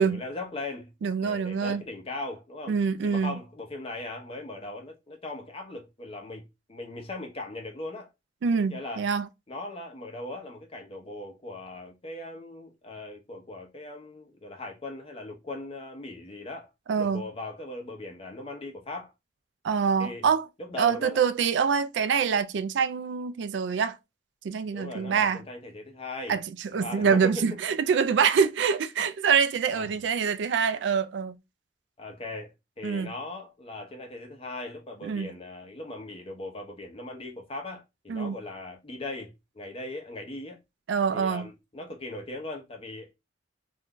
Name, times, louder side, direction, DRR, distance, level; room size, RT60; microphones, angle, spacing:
voice 1, 0.0-0.9 1.2-2.7 3.0-8.1 8.7-9.1 9.5-16.7 17.0-19.1 20.0-20.3 20.6-21.2 24.7-26.4 26.8-27.4 29.7-30.0 32.0-40.6 41.1-43.1, left 2 dB, 30° left, 0.8 m, -39 dB
voice 2, 1.0-1.8 2.7-3.4 8.4-9.2 16.9-17.2 19.6-20.5 20.8-24.0 24.4-25.4 26.3-31.4 32.8-33.1 35.0-35.3 38.1-38.4 40.9-41.5, right 6 dB, 70° right, 0.3 m, -25 dB
2.5 x 2.2 x 3.6 m
head